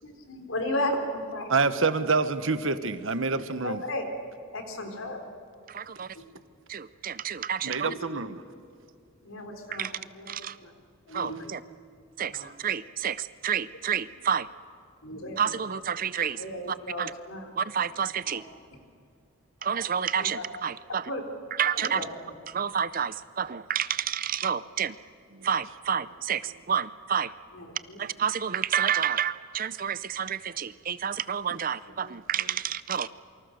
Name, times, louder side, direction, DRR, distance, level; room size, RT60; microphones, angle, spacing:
voice 1, 0.0-1.4 3.6-4.0 4.5-5.2 7.9-8.0 9.2-9.9 10.1-10.3 10.6-10.7 11.1-11.5 12.4-12.5 15.0-15.4 16.4-17.5 17.8-17.9 18.3-18.4 20.2-20.4 21.1-21.2 21.8-22.1 27.5-28.1, left 1 dB, 65° left, 5 dB, 3.9 m, -34 dB
voice 2, 1.5-3.8 6.0-6.1 7.6-8.4 25.3-25.5 32.0-32.2, right 4 dB, 60° right, 12 dB, 1.2 m, -27 dB
voice 3, 5.7-6.1 6.7-7.9 9.7-9.9 10.3-10.6 11.1-11.6 12.2-14.5 15.4-17.1 17.6-18.4 19.6-21.1 21.6-22.0 22.5-25.0 25.4-27.3 28.0-33.1, right 8 dB, 40° right, 16 dB, 0.5 m, -29 dB
28.0 x 25.0 x 6.6 m, 2.5 s
head